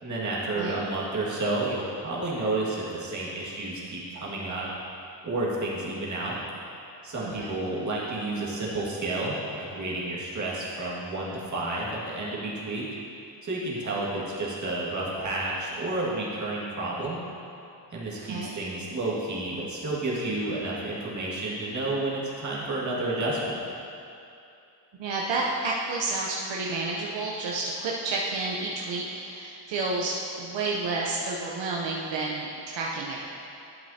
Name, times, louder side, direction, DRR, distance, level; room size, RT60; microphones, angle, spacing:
voice 1, 0.0-4.7 5.2-6.4 7.0-12.9 13.4-17.2 17.9-23.6, right 2 dB, 40° right, -6 dB, 2.0 m, -30 dB
voice 2, 7.2-7.5 18.2-18.6 24.9-33.3, right 3 dB, 75° right, -3 dB, 0.9 m, -30 dB
12.0 x 7.4 x 2.8 m, 2.7 s
cardioid pair, 105°, 45 cm